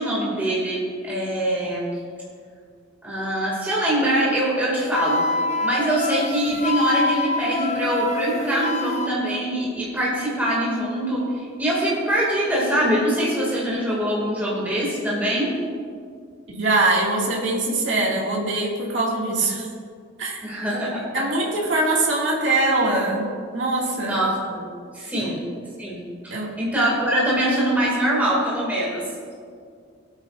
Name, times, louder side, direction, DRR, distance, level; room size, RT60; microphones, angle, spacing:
voice 1, 0.0-2.0 3.0-5.4 5.6-15.5 20.4-21.2 24.0-24.7 24.9-25.4 25.8-29.0, right 1 dB, 10° right, -6 dB, 2.3 m, -23 dB
Wind instrument woodwind instrument, 4.9-9.1, left 3 dB, 35° left, 0.6 m, -26 dB
voice 2, 16.5-19.7 20.2-20.4 20.7-20.8 21.1-24.3 25.1-25.3 26.3-26.6, right 2 dB, 65° right, -3 dB, 2.1 m, -23 dB
19.0 x 8.8 x 2.5 m, 2.2 s
head